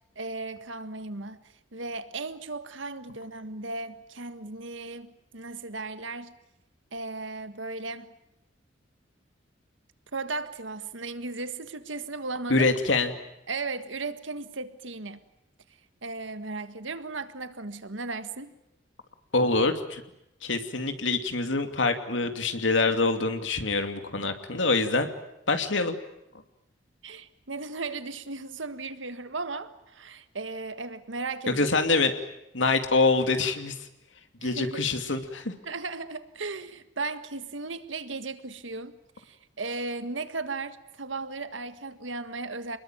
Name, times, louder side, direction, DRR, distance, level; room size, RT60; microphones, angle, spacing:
voice 1, 0.2-1.4 1.7-6.3 6.9-8.1 10.1-12.7 13.5-15.2 16.0-18.5 27.0-31.7 34.4-34.8 35.7-42.8, right 3 dB, 85° right, 1.7 m, -36 dB
voice 2, 12.5-13.1 19.3-20.0 20.4-25.1 25.5-26.0 31.5-32.1 32.5-33.9 34.4-35.5, left 3 dB, 80° left, 2.7 m, -25 dB
29.0 x 21.0 x 9.2 m
head